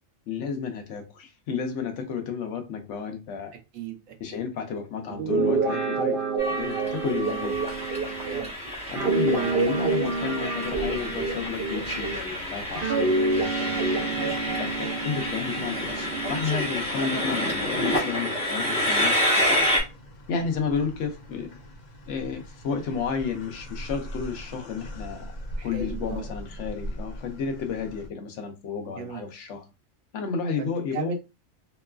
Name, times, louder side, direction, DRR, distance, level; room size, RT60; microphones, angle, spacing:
voice 1, 0.3-3.6 4.2-6.2 6.5-7.6 8.9-19.7 20.3-21.6 22.1-25.4 25.6-29.7 30.1-31.1, left 6 dB, 70° left, 0.9 m, -32 dB
voice 2, 3.7-4.4 7.1-7.4 8.3-8.5 14.9-15.1 17.2-17.3 25.6-26.3 29.0-29.2 30.6-31.1, right 7 dB, 80° right, 1.1 m, -37 dB
Guitar, 5.1-12.3 12.8-16.5, right 4 dB, 55° right, 0.7 m, -27 dB
Train, 6.4-19.8, left 1 dB, 5° left, 0.8 m, -29 dB
sound 1, 19.4-28.1, equal, 50° left, 0.5 m, -40 dB
3.0 x 2.3 x 2.2 m
omnidirectional pair, 1.3 m